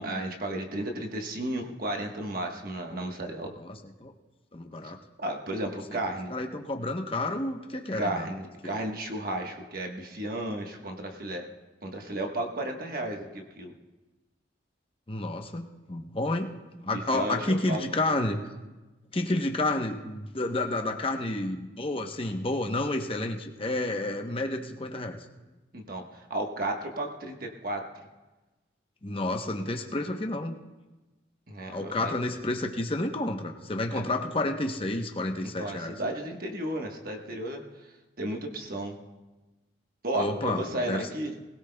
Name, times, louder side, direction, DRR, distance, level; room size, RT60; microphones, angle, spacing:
voice 1, 0.0-3.5 5.2-6.3 7.9-11.4 11.8-13.7 16.9-17.8 25.7-27.8 31.5-32.1 33.9-34.0 35.6-37.6 38.2-38.9 40.0-41.3, right 1 dB, 50° right, 2 dB, 1.3 m, -33 dB
voice 2, 3.6-4.1 4.5-5.0 5.9-6.0 6.3-8.3 8.6-8.8 15.1-16.5 16.8-18.4 19.1-25.2 29.0-30.5 31.7-36.0 40.1-41.0, left 2 dB, 30° left, 4 dB, 0.9 m, -30 dB
22.0 x 16.5 x 2.3 m, 1.1 s
head